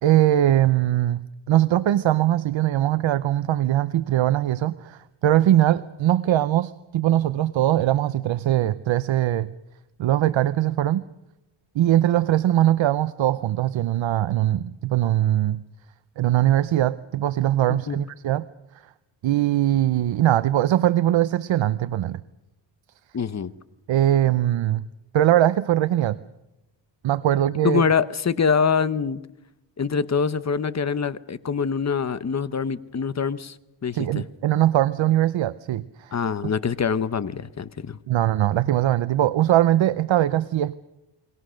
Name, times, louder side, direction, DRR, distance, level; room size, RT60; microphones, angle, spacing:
voice 1, 0.0-1.2 1.5-9.5 10.0-11.0 11.7-15.6 16.2-18.5 19.2-22.2 23.9-24.9 25.1-26.2 27.0-27.8 33.9-36.1 36.4-36.5 38.1-40.7, right 13 dB, 80° right, 14 dB, 0.8 m, -21 dB
voice 2, 23.1-23.5 27.6-29.2 29.8-33.5 33.8-34.2 36.1-38.0, left 6 dB, 35° left, 15 dB, 0.9 m, -24 dB
29.5 x 21.0 x 6.4 m, 0.93 s
wide cardioid pair, 130°, 46 cm